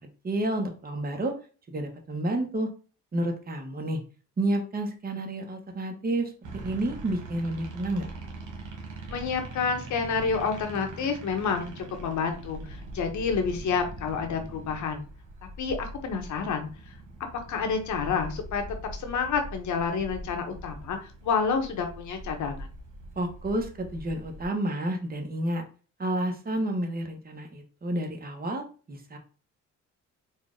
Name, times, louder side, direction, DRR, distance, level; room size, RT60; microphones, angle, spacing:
voice 1, 0.2-1.3 1.7-2.7 3.1-4.0 4.4-8.1 23.2-25.6 26.0-29.2, right 1 dB, 30° right, 4 dB, 1.1 m, -30 dB
sound 1, 6.4-24.5, right 2 dB, 80° right, 1.2 m, -42 dB
voice 2, 9.1-15.0 15.6-17.0 17.5-18.6 19.0-22.7, left 5 dB, 70° left, 5 dB, 1.1 m, -29 dB
4.3 x 2.4 x 3.8 m, 0.37 s
cardioid pair, 90°, 30 cm